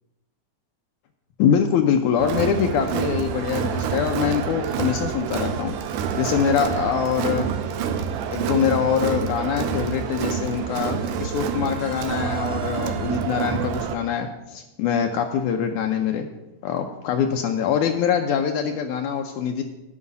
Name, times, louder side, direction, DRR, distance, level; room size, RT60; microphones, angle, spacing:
voice 1, 1.4-5.7 6.2-7.5 8.3-16.3 16.6-19.6, left 7 dB, 75° left, 4 dB, 2.0 m, -24 dB
Crowd, 2.2-13.9, right 7 dB, 90° right, 2.3 m, -27 dB
9.6 x 5.7 x 8.4 m, 0.98 s
omnidirectional pair, 3.7 m